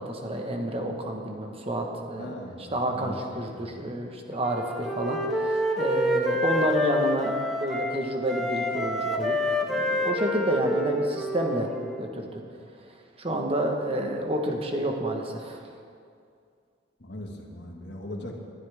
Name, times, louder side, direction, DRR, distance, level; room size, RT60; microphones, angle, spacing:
voice 1, 0.0-2.4 2.7-9.3 9.7-11.7 12.0-12.4 13.2-15.6, right 1 dB, 30° right, 2 dB, 1.3 m, -29 dB
voice 2, 2.2-3.1 3.5-3.6 17.0-18.4, left 1 dB, 60° left, 1 dB, 1.7 m, -39 dB
Wind instrument woodwind instrument, 4.4-7.9 8.3-12.0, left 1 dB, ahead, 0.9 m, -28 dB
19.0 x 11.5 x 3.6 m, 2.3 s
head